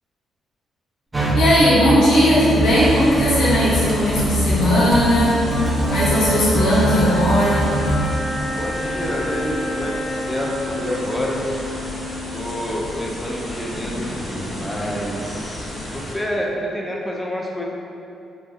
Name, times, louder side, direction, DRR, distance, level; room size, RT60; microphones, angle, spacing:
sound 1, 1.1-8.1, right 1 dB, 30° right, 0.7 m, -22 dB
voice 1, 1.3-5.3 5.9-7.7, equal, 75° left, -9 dB, 1.0 m, -17 dB
sound 2, 2.6-16.1, left 1 dB, 50° left, 1.1 m, -33 dB
sound 3, 3.6-13.1, equal, 10° right, 1.1 m, -30 dB
voice 2, 8.5-11.4 12.3-14.1 14.5-17.6, equal, 15° left, -2 dB, 0.6 m, -28 dB
3.9 x 2.3 x 2.4 m, 2.7 s
hypercardioid pair, 50°, 0 cm